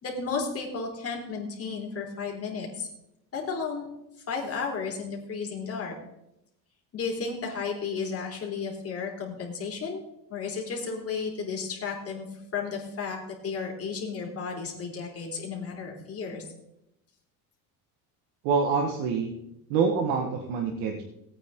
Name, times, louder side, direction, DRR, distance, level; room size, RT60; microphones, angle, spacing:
voice 1, 0.0-2.9 3.3-3.9 4.3-5.9 6.9-16.4, left 5 dB, 35° left, -1 dB, 3.7 m, -33 dB
voice 2, 18.4-19.3 19.7-21.0, right 5 dB, 80° right, 2 dB, 1.7 m, -26 dB
18.0 x 9.1 x 3.8 m, 0.84 s
cardioid pair, 135°, 42 cm